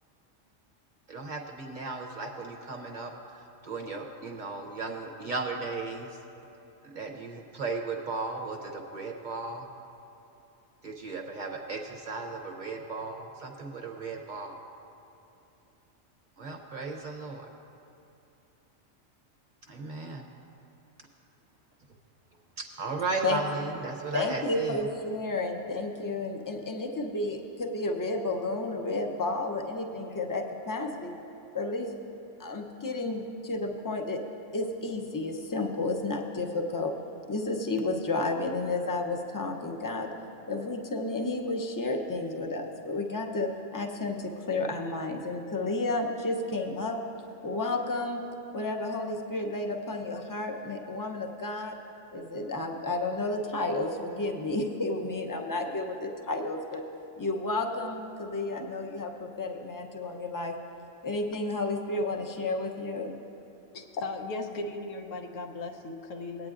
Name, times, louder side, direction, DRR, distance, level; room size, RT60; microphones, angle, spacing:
voice 1, 1.1-6.2 6.8-9.7 10.8-14.6 16.4-17.5 19.7-20.2 22.7-24.9, right 3 dB, 45° right, 1 dB, 0.7 m, -36 dB
voice 2, 24.1-31.1 31.5-31.9 32.4-34.2 34.5-36.9 37.3-40.1 40.5-47.0 47.4-48.2 48.5-51.7 52.1-56.8 57.2-60.5 61.0-63.2, left 2 dB, 20° left, 2 dB, 0.5 m, -31 dB
voice 3, 63.7-66.5, left 2 dB, 85° left, 4 dB, 1.2 m, -37 dB
18.5 x 9.2 x 2.5 m, 2.9 s
omnidirectional pair, 1.3 m